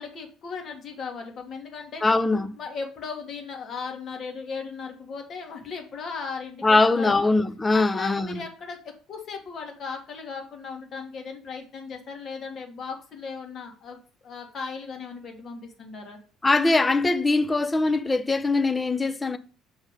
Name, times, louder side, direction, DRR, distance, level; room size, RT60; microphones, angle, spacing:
voice 1, 0.0-2.0 2.6-7.3 7.7-8.8 9.1-16.2, left 5 dB, 50° left, 1.6 m, -37 dB
voice 2, 2.0-2.5 6.6-8.4 16.4-19.4, left 3 dB, 20° left, 0.6 m, -22 dB
6.4 x 3.2 x 4.9 m
hypercardioid pair, 60°, 0 cm